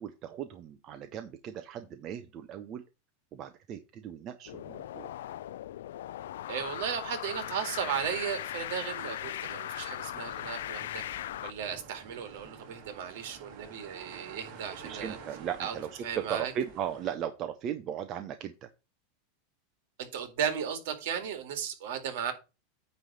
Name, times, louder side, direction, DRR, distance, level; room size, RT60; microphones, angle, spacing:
voice 1, 0.0-2.8 3.3-5.1 14.8-18.7, right 9 dB, 30° right, 0.6 m, -37 dB
sound 1, 4.5-11.5, left 12 dB, 85° left, 0.4 m, -39 dB
voice 2, 6.5-11.0 11.4-15.2 15.6-16.5 20.0-22.3, right 8 dB, 60° right, 2.1 m, -35 dB
sound 2, 10.1-17.1, right 6 dB, 45° right, 2.2 m, -49 dB
9.5 x 3.3 x 6.8 m
supercardioid pair, 165°, 0 cm